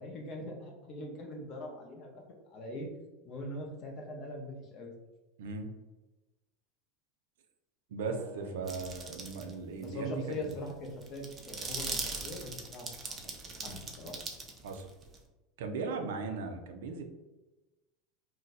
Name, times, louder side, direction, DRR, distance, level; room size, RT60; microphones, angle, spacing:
voice 1, 0.0-2.2 2.5-2.9 3.2-4.9 8.0-8.7 9.8-13.4 13.6-14.2, left 1 dB, 30° left, 1 dB, 0.6 m, -42 dB
voice 2, 5.4-5.7 7.9-10.6 14.6-14.9 15.6-17.0, right 4 dB, 90° right, 5 dB, 0.5 m, -38 dB
sound 1, 8.7-9.5 9.8-9.9 10.3-15.2, right 3 dB, 15° right, 0.4 m, -40 dB
2.6 x 2.2 x 4.0 m, 1.1 s
supercardioid pair, 175°, 0 cm